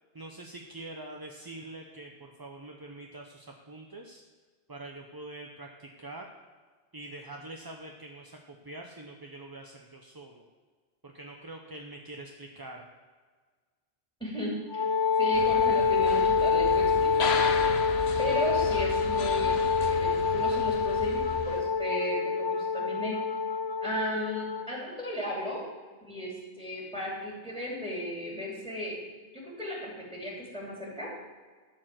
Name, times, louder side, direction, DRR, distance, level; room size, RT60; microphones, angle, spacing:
voice 1, 0.1-4.2 4.7-6.3 6.9-10.5 11.0-12.9, right 2 dB, 25° right, 2 dB, 0.6 m, -44 dB
voice 2, 14.2-14.9 15.2-17.8 18.2-23.2 23.8-25.6 26.0-29.0 29.3-31.1, equal, 5° left, -3 dB, 2.8 m, -35 dB
Wind instrument woodwind instrument, 14.7-24.7, left 5 dB, 50° left, 0.3 m, -26 dB
sound 1, 15.3-21.6, left 5 dB, 75° left, 1.1 m, -35 dB
12.0 x 4.6 x 7.6 m, 1.5 s
omnidirectional pair, 1.1 m